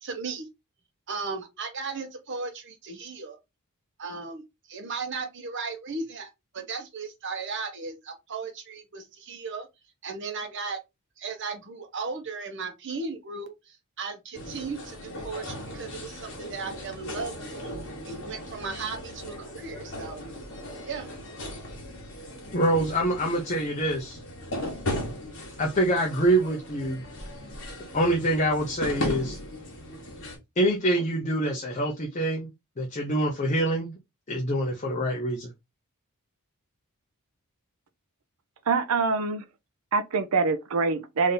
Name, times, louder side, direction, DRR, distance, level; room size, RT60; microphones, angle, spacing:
voice 1, 0.0-0.5 1.1-3.4 4.0-6.3 6.5-9.7 10.0-10.8 11.2-17.6 18.0-20.2 20.9-21.1, right 4 dB, 55° right, 0.9 m, -36 dB
sound 1, 14.3-30.4, left 1 dB, 55° left, 1.4 m, -37 dB
voice 2, 22.5-24.2 25.6-27.0 27.9-29.4 30.6-32.5 32.8-34.0 34.3-35.5, right 1 dB, 30° left, 0.7 m, -25 dB
voice 3, 38.7-39.4 39.9-41.3, right 4 dB, 75° right, 0.6 m, -25 dB
3.6 x 2.7 x 3.7 m
head